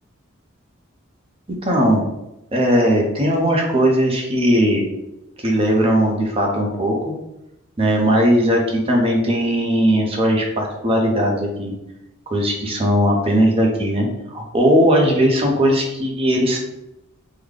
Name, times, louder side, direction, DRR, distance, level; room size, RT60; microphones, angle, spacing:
voice 1, 1.6-2.0 2.5-4.9 5.4-7.1 7.8-11.7 12.3-16.6, equal, 30° right, 0 dB, 0.7 m, -18 dB
3.7 x 2.2 x 3.3 m, 0.89 s
head